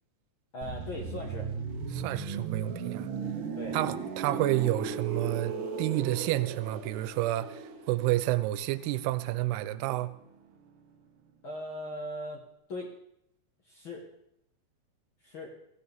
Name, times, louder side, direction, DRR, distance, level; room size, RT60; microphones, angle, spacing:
voice 1, 0.5-1.5 3.5-3.8 11.4-12.4 12.7-12.9 13.6-14.0 15.2-15.5, left 1 dB, 50° left, 1.5 m, -39 dB
sound 1, 0.6-10.3 10.5-10.8, right 5 dB, 65° right, 2.7 m, -37 dB
voice 2, 1.9-3.1 3.7-10.1, right 16 dB, 85° right, 2.6 m, -30 dB
17.0 x 16.5 x 3.6 m
omnidirectional pair, 4.5 m